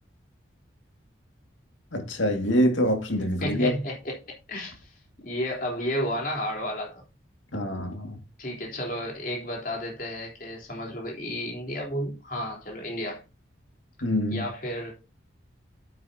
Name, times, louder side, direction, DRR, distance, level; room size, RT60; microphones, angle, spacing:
voice 1, 1.9-3.7 7.5-8.2 14.0-14.4, equal, 80° left, 2.1 m, -25 dB
voice 2, 3.4-4.2 4.5-4.9 5.2-7.0 8.4-13.2 14.3-14.9, equal, 45° left, 3.6 m, -32 dB
9.1 x 8.6 x 2.8 m
head